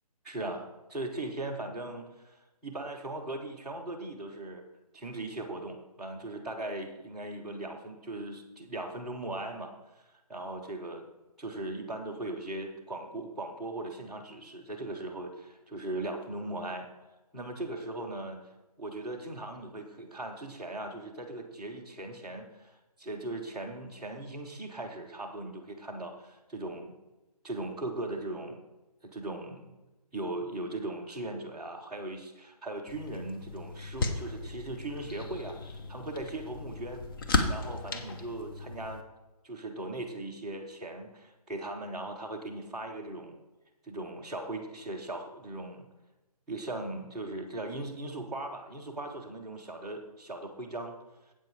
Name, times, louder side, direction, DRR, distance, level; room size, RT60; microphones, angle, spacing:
voice 1, 0.2-2.4 2.6-4.6 4.9-9.7 10.3-11.1 11.4-16.9 17.3-18.4 18.8-27.0 27.4-28.6 29.0-29.8 30.1-37.1 37.5-39.0 39.4-43.4 43.8-45.9 46.5-51.0, right 2 dB, ahead, -9 dB, 0.4 m, -39 dB
sound 1, 32.9-39.0, left 3 dB, 35° left, 0.8 m, -35 dB
8.2 x 7.5 x 4.6 m, 1.0 s
figure-of-eight pair, 155°, 20 cm